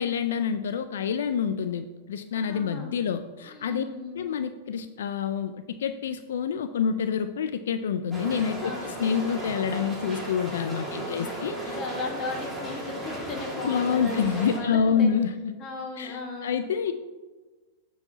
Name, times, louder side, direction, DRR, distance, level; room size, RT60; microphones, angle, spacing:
voice 1, 0.0-3.8 4.1-11.8 13.6-15.5 16.0-16.9, left 7 dB, 85° left, 10 dB, 0.3 m, -27 dB
voice 2, 2.3-2.9 3.5-4.2 8.6-8.9 10.9-11.3 11.6-15.1 15.6-16.6, left 3 dB, 35° left, 1 dB, 1.4 m, -37 dB
sound 1, 8.1-14.6, right 1 dB, 10° right, 1.9 m, -35 dB
7.0 x 4.7 x 3.9 m, 1.3 s
hypercardioid pair, 130°, 0 cm